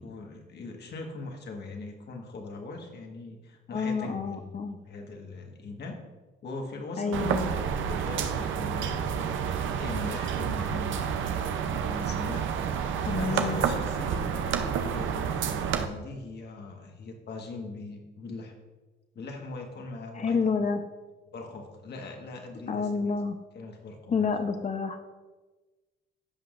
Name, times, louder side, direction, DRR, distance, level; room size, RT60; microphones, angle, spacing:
voice 1, 0.0-6.0 6.4-9.2 9.8-11.3 11.7-12.5 13.1-18.5 19.1-20.7 21.3-23.2 23.5-24.3, left 3 dB, 55° left, 2 dB, 1.6 m, -41 dB
voice 2, 3.7-4.8 7.0-7.5 13.0-13.6 20.1-20.8 22.7-23.3 24.1-25.0, left 5 dB, 35° left, 7 dB, 0.8 m, -29 dB
sound 1, 7.1-15.9, right 7 dB, 75° right, 0.7 m, -29 dB
15.5 x 5.5 x 2.5 m, 1.2 s
cardioid pair, 90°, 20 cm